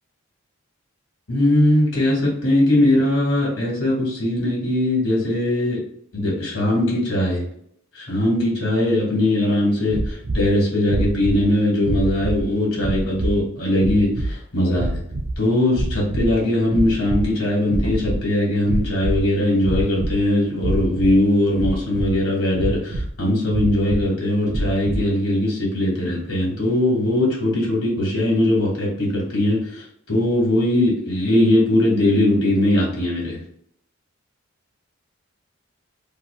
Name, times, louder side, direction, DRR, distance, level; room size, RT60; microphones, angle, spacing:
voice 1, 1.3-5.8 6.1-7.4 7.9-15.0 15.4-33.4, left 1 dB, 75° left, -4 dB, 1.2 m, -20 dB
sound 1, 9.9-10.5 10.8-11.5 11.8-12.4 12.8-13.4 13.8-14.3 14.7-15.4 15.7-16.4 16.7-17.3 17.6-18.2 18.6-19.3 19.6-20.2 20.6-21.1 21.6-22.2 22.5-23.1 23.5-24.0 24.5-25.1, right 1 dB, 40° right, 0.3 m, -25 dB
2.7 x 2.4 x 3.1 m, 0.68 s
head